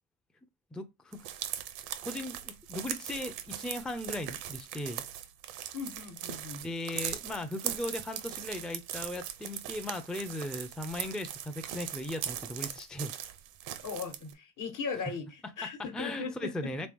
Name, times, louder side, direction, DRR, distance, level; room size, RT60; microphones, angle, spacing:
voice 1, 0.7-1.2 2.0-5.0 6.6-13.1 15.9-16.9, left 1 dB, ahead, 0.5 m, -37 dB
sound 1, 1.1-14.3, right 11 dB, 80° right, 0.8 m, -40 dB
voice 2, 5.7-6.6 13.8-16.5, left 5 dB, 55° left, 1.2 m, -38 dB
3.4 x 3.0 x 3.4 m
supercardioid pair, 75°, 37 cm